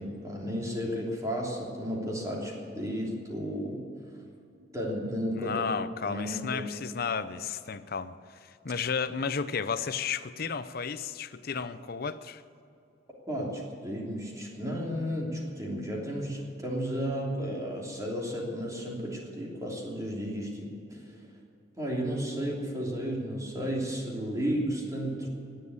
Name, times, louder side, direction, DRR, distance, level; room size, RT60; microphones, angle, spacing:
voice 1, 0.0-3.8 4.7-5.6 6.0-6.7 13.3-21.1 21.8-25.3, equal, 20° right, 3.1 m, -33 dB
voice 2, 5.4-12.4, left 6 dB, 55° left, 0.7 m, -33 dB
19.0 x 7.7 x 8.5 m
head